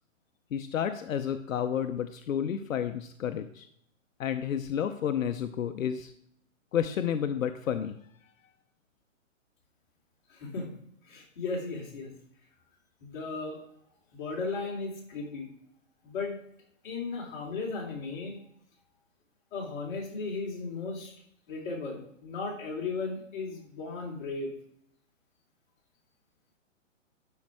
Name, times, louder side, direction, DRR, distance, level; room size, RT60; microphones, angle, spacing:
voice 1, 0.5-3.7 4.2-6.1 6.7-8.0, left 9 dB, 85° left, 9 dB, 0.8 m, -31 dB
voice 2, 10.3-10.7 11.0-12.1 13.0-13.6 14.1-15.5 16.0-16.4 16.8-18.4 19.5-21.1 21.5-24.5, left 4 dB, 40° left, -2 dB, 3.2 m, -36 dB
12.0 x 5.5 x 4.8 m, 0.70 s
hypercardioid pair, 160°, 39 cm